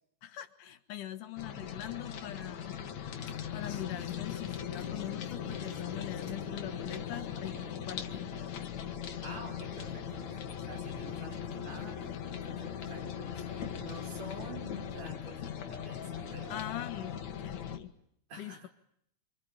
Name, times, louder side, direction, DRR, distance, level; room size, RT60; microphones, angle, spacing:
voice 1, 0.2-2.8 3.5-8.3 16.5-17.9 18.4-18.7, left 13 dB, 75° left, 11 dB, 2.9 m, -42 dB
sound 1, 1.4-17.8, left 8 dB, 60° left, 2.9 m, -39 dB
Mechanisms / Sawing, 3.2-7.9, left 4 dB, 40° left, 2.2 m, -55 dB
Gong, 4.8-12.9, right 4 dB, 5° right, 2.7 m, -55 dB
voice 2, 9.2-16.6 18.3-18.7, right 1 dB, 55° right, 4 dB, 6.0 m, -48 dB
26.5 x 25.5 x 8.7 m, 0.72 s
omnidirectional pair, 3.7 m